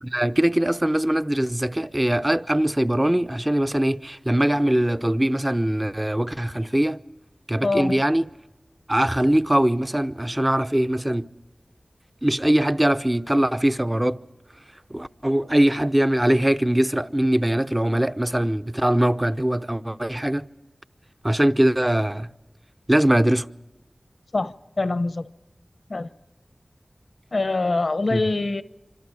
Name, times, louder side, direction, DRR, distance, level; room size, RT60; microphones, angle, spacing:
voice 1, 0.0-7.0 7.5-8.3 8.9-11.3 12.2-14.2 14.9-20.4 21.2-22.3 22.9-23.5 28.1-28.2, right 1 dB, 20° right, 0.7 m, -21 dB
voice 2, 7.6-8.0 24.3-25.3 25.9-26.1 27.3-28.6, left 2 dB, 75° left, 0.9 m, -24 dB
26.5 x 25.5 x 4.8 m
wide cardioid pair, 50°, 0 cm